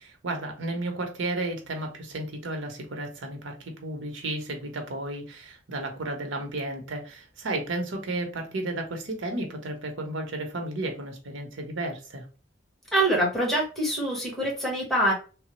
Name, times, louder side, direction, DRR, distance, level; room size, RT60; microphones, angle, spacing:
voice 1, 0.2-12.3, right 2 dB, 90° right, 0.8 m, -33 dB
voice 2, 12.9-15.1, right 1 dB, ahead, 1.1 m, -25 dB
3.2 x 2.0 x 3.0 m
head